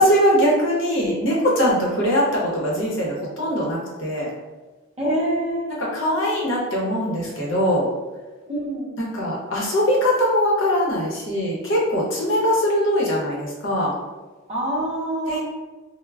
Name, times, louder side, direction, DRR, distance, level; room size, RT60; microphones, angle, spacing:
voice 1, 0.0-4.3 5.8-7.9 9.0-13.9 15.3-15.4, equal, 65° left, -4 dB, 0.7 m, -21 dB
voice 2, 5.0-5.7 8.5-8.9 14.5-15.4, right 1 dB, 30° right, -6 dB, 0.6 m, -25 dB
2.2 x 2.0 x 3.3 m, 1.2 s
head